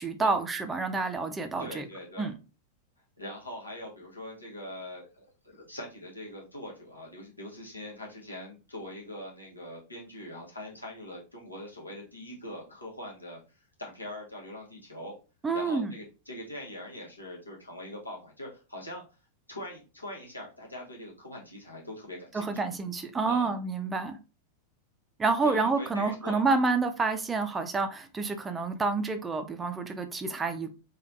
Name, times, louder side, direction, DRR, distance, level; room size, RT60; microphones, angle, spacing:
voice 1, 0.0-1.9 2.2-2.4 15.4-15.9 22.3-24.2 25.2-30.7, right 4 dB, 15° right, 0.4 m, -28 dB
voice 2, 1.6-2.3 3.2-13.4 13.8-15.2 15.5-19.0 19.5-22.6 23.3-23.5 25.4-26.4, left 1 dB, 80° left, 1.0 m, -42 dB
3.1 x 2.3 x 2.6 m
figure-of-eight pair, 90°, 0 cm